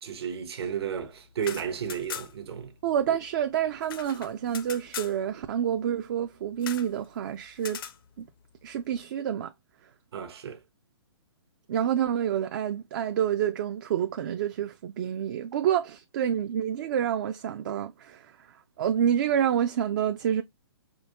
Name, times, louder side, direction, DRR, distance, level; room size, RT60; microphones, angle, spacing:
voice 1, 0.0-2.7 10.1-10.6, right 8 dB, 65° right, 0.9 m, -33 dB
sound 1, 1.3-2.5 2.8-2.9 3.2-5.2 6.6-6.9 7.6-8.0, left 9 dB, 55° left, 0.6 m, -40 dB
voice 2, 2.8-7.8 8.2-8.3 8.6-9.5 11.7-18.3 18.8-20.4, right 9 dB, 45° right, 0.4 m, -28 dB
5.0 x 2.8 x 2.5 m
hypercardioid pair, 135°, 14 cm